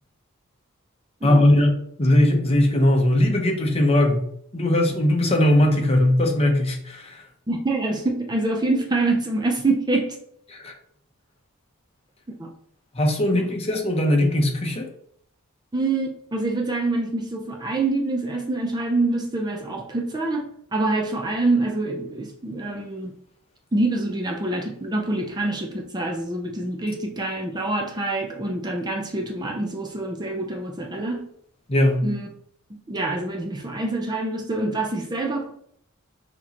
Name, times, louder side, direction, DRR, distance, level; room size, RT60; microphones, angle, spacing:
voice 1, 1.2-1.7 2.0-4.2 4.5-7.2 10.5-10.7 12.9-14.9 31.7-32.0, left 1 dB, 30° left, 0.8 m, -19 dB
voice 2, 7.5-10.2 12.4-12.5 13.3-13.5 15.7-23.1 23.7-31.3 32.0-32.3 32.7-35.5, right 2 dB, 20° right, 0.5 m, -26 dB
6.0 x 2.9 x 2.9 m
head